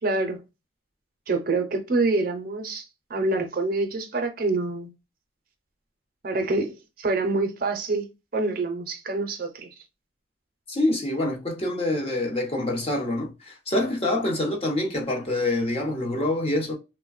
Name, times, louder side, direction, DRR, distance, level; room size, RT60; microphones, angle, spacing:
voice 1, 0.0-0.4 1.3-2.8 3.1-4.9 6.2-8.1 8.3-9.7, right 3 dB, 50° right, 0.6 m, -26 dB
voice 2, 10.7-16.8, left 1 dB, 30° left, 0.7 m, -26 dB
3.3 x 2.1 x 2.3 m
head